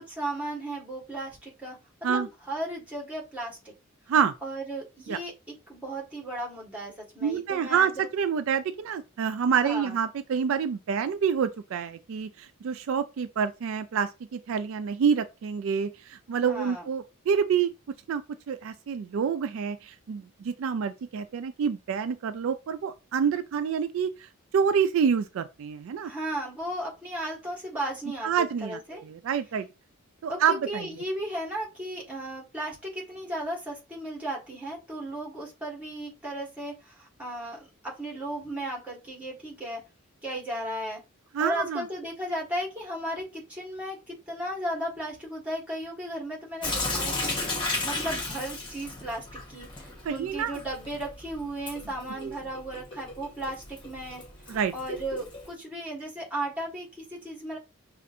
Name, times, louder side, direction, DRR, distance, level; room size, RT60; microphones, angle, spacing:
voice 1, 0.0-1.8 2.1-3.7 4.4-5.3 5.7-8.1 9.6-9.9 16.5-16.9 26.0-28.3 28.6-29.0 30.5-39.8 40.2-41.0 41.4-57.6, right 1 dB, 5° right, 1.5 m, -35 dB
voice 2, 7.2-17.7 18.1-26.1 28.2-29.7 30.2-30.9 41.3-41.8 50.0-50.6 52.2-52.4 54.5-54.7, right 7 dB, 65° right, 0.3 m, -27 dB
Sink (filling or washing) / Drip, 46.6-55.5, left 2 dB, 20° left, 0.8 m, -35 dB
5.3 x 2.5 x 2.5 m
head